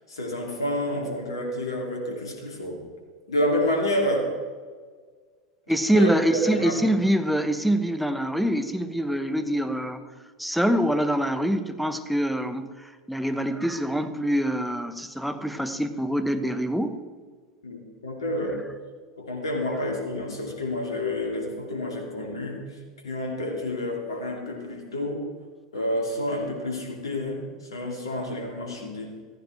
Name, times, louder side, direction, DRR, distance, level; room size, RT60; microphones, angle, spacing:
voice 1, 0.1-2.9 3.3-4.4 5.9-6.9 17.6-18.6 19.2-22.8 23.0-25.3 25.7-29.1, left 1 dB, 70° left, 1 dB, 2.5 m, -29 dB
voice 2, 5.7-10.0 10.4-17.0, right 1 dB, ahead, 8 dB, 1.0 m, -25 dB
15.0 x 14.5 x 3.4 m, 1.5 s
figure-of-eight pair, 80°, 3 cm